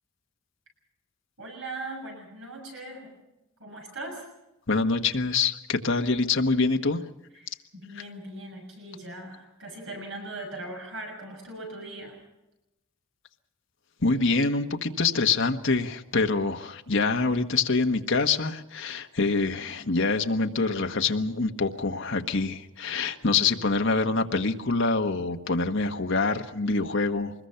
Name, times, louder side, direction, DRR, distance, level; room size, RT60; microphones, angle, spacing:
voice 1, 1.4-3.1 3.6-4.3 7.3-12.2, right 2 dB, 60° right, 2 dB, 6.7 m, -39 dB
voice 2, 4.7-7.0 14.0-27.3, left 3 dB, 55° left, 4 dB, 1.4 m, -25 dB
24.5 x 21.5 x 5.8 m, 0.93 s
head